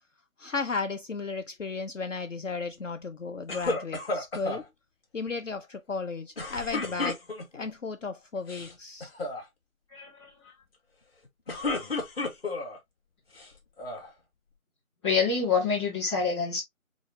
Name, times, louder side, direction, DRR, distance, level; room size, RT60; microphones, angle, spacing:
voice 1, 0.4-4.6 5.1-7.2 7.5-9.1, left 4 dB, 60° left, 0.6 m, -34 dB
sound 1, 3.5-4.6 6.4-7.7 8.4-8.7 9.0-9.4 11.2-12.8 13.3-14.1, left 3 dB, 45° left, 2.0 m, -32 dB
voice 2, 9.9-10.3 15.0-16.6, left 5 dB, 20° left, 2.4 m, -26 dB
7.1 x 2.4 x 2.6 m
figure-of-eight pair, 160°, 42 cm